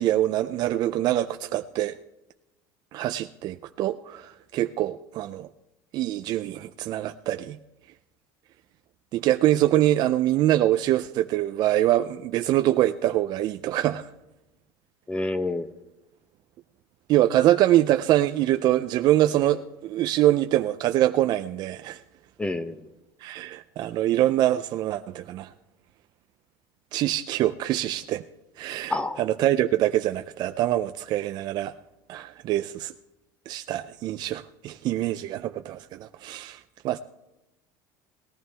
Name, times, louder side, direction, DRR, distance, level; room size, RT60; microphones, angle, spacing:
voice 1, 0.0-2.0 2.9-5.5 5.9-7.6 9.1-14.1 17.1-22.0 23.2-25.5 26.9-28.2 28.6-31.7 32.1-32.9 33.5-37.0, right 13 dB, 45° right, 9 dB, 0.5 m, -24 dB
voice 2, 15.1-15.7 22.4-22.8 28.9-29.2, left 2 dB, 10° left, 11 dB, 0.7 m, -28 dB
19.0 x 14.0 x 3.4 m, 0.93 s
supercardioid pair, 130°, 10 cm